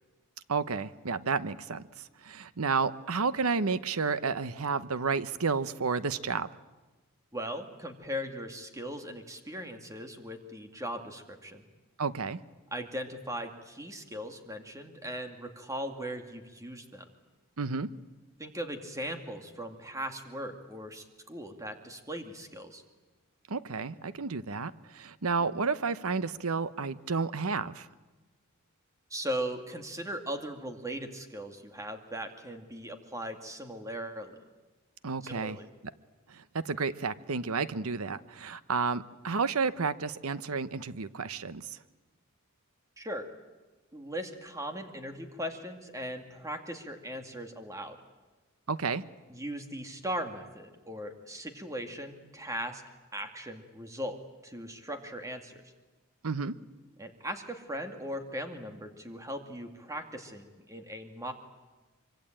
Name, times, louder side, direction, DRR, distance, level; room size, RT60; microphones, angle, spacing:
voice 1, 0.5-1.8 2.2-6.5 12.0-12.4 17.6-17.9 23.5-27.9 35.0-35.6 36.3-41.8 48.7-49.0 56.2-56.5, right 4 dB, 75° right, 15 dB, 0.9 m, -31 dB
voice 2, 7.3-11.6 12.7-17.1 18.4-22.8 29.1-34.4 35.2-35.7 43.0-43.3 43.9-48.0 49.3-52.8 53.1-55.6 57.0-61.3, equal, 15° right, 6 dB, 2.4 m, -39 dB
24.5 x 24.5 x 9.0 m, 1.2 s
head